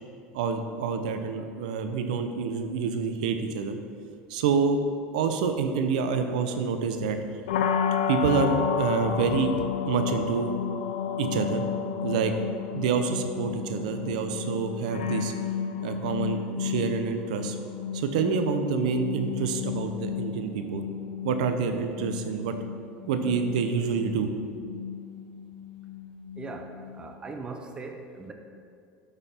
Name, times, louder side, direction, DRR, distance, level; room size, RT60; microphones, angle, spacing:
voice 1, 0.3-3.8 4.3-4.8 5.1-7.2 8.1-10.5 11.2-11.7 12.0-12.3 12.7-15.3 15.8-17.6 17.9-20.8 21.2-22.6 23.1-24.3, right 5 dB, 85° right, 7 dB, 0.7 m, -27 dB
sound 1, 7.5-27.3, left 7 dB, 90° left, 0.6 m, -32 dB
voice 2, 26.4-28.3, right 3 dB, 20° right, 5 dB, 0.8 m, -39 dB
8.1 x 5.6 x 4.3 m, 2.4 s
supercardioid pair, 110°, 4 cm